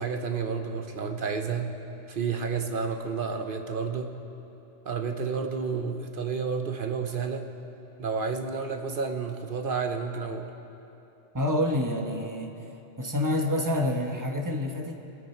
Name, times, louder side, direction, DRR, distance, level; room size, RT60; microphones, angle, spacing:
voice 1, 0.0-1.7 2.1-4.1 4.8-7.5 8.0-10.5, right 5 dB, 50° right, 5 dB, 1.1 m, -30 dB
voice 2, 11.3-12.6 13.0-14.9, left 1 dB, 15° right, 2 dB, 1.1 m, -27 dB
24.0 x 10.0 x 4.4 m, 3.0 s
omnidirectional pair, 1.2 m